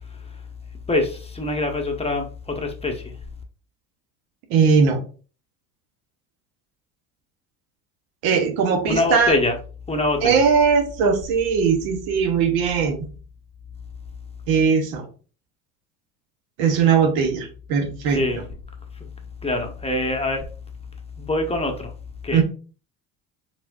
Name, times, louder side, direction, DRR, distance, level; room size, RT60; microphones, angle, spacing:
voice 1, 0.9-3.1 8.8-9.6 9.9-10.3 18.1-18.4 19.4-20.5 21.2-21.9 22.2-22.4, left 2 dB, 15° left, 1.1 m, -24 dB
voice 2, 4.5-5.0 8.2-9.3 10.2-13.0 14.5-15.1 16.6-18.4 22.3-22.4, right 6 dB, 70° right, 1.2 m, -19 dB
4.6 x 4.1 x 2.6 m
hypercardioid pair, 75°, 39 cm